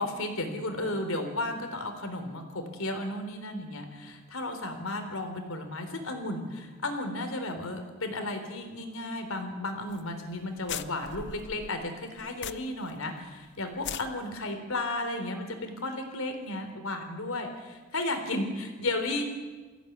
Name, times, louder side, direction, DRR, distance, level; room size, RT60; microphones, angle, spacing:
voice 1, 0.0-19.3, left 2 dB, 75° left, 6 dB, 3.7 m, -34 dB
sound 1, 9.9-10.1 10.3-10.4 10.7-12.9 13.2-13.3 13.7-14.1, left 9 dB, 55° left, 0.7 m, -39 dB
23.0 x 16.0 x 9.4 m, 1.4 s
head